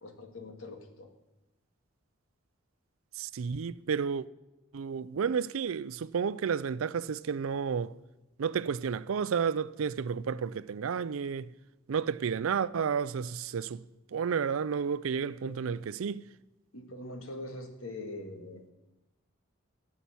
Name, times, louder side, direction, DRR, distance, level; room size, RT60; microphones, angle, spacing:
voice 1, 0.0-1.1 15.4-15.6 16.7-18.6, left 1 dB, 85° left, 1.8 m, -43 dB
voice 2, 3.1-4.3 4.7-7.9 8.4-11.5 11.9-13.8 14.1-16.2, right 6 dB, 90° right, 0.4 m, -31 dB
14.0 x 5.8 x 8.5 m
head